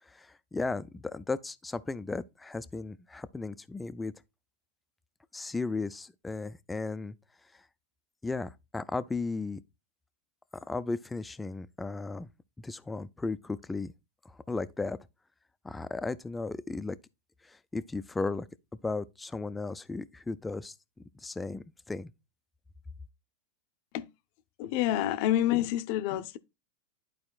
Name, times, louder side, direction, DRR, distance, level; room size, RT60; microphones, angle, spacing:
voice 1, 0.5-4.1 5.3-7.2 8.2-9.6 10.7-12.3 12.6-13.9 14.5-15.0 15.6-17.0 17.7-18.5 18.8-20.7 21.2-22.1, left 3 dB, 10° left, 0.5 m, -35 dB
voice 2, 24.6-26.4, left 12 dB, 55° left, 0.6 m, -28 dB
11.5 x 4.3 x 2.4 m
hypercardioid pair, 105°, 0 cm